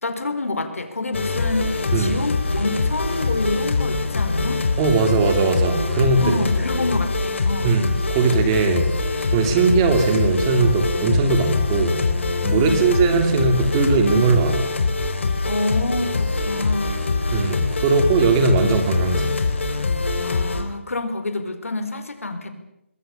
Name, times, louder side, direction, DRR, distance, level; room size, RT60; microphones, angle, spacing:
voice 1, 0.0-4.6 6.2-7.8 12.6-13.0 15.4-17.0 20.2-22.5, left 2 dB, 90° left, 9 dB, 4.5 m, -27 dB
sound 1, 1.1-20.6, left 3 dB, 60° left, 4.7 m, -23 dB
voice 2, 4.8-6.4 7.6-8.9 9.3-12.0 12.4-14.7 17.3-19.3, right 4 dB, 20° right, 6 dB, 2.9 m, -19 dB
26.0 x 22.0 x 7.1 m, 0.86 s
hypercardioid pair, 170°, 7 cm